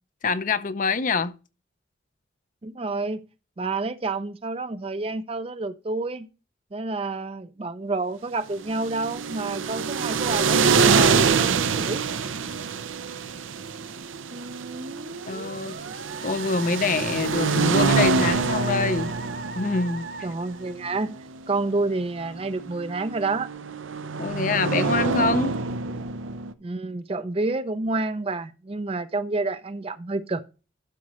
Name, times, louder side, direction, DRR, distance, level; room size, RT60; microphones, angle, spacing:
voice 1, 0.2-1.3 15.3-15.8 16.2-19.1 19.5-20.1 24.2-25.5, left 4 dB, 40° left, 0.5 m, -25 dB
voice 2, 2.6-3.3 3.6-6.3 6.7-12.0 20.2-21.2 21.5-23.5 26.6-30.4, right 3 dB, 30° right, 0.4 m, -29 dB
sound 1, 8.6-26.5, right 5 dB, 85° right, 0.6 m, -26 dB
Musical instrument, 14.3-21.2, right 3 dB, 55° right, 0.9 m, -39 dB
11.5 x 6.1 x 3.1 m
head